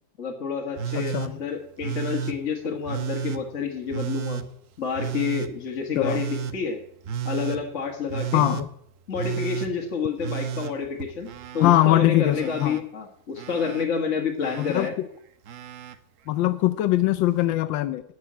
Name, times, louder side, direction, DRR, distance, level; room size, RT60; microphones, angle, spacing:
voice 1, 0.2-4.4 4.8-6.8 7.2-8.4 9.1-11.3 11.5-14.9, left 6 dB, 40° left, 1 dB, 1.7 m, -29 dB
Telephone, 0.8-1.3 1.8-2.4 2.9-3.4 3.9-4.5 5.0-5.5 6.0-6.6 7.1-7.6 8.1-8.7 9.1-9.7 10.2-11.8 12.0-12.8 13.4-13.9 14.4-14.9 15.5-16.0 17.2-17.3, right 8 dB, 60° right, 0.9 m, -32 dB
voice 2, 0.9-1.4 6.0-6.2 8.3-8.7 11.6-12.8 14.6-15.1 16.3-18.0, left 15 dB, 80° left, 12 dB, 1.3 m, -22 dB
11.5 x 6.2 x 8.6 m, 0.70 s
omnidirectional pair, 2.0 m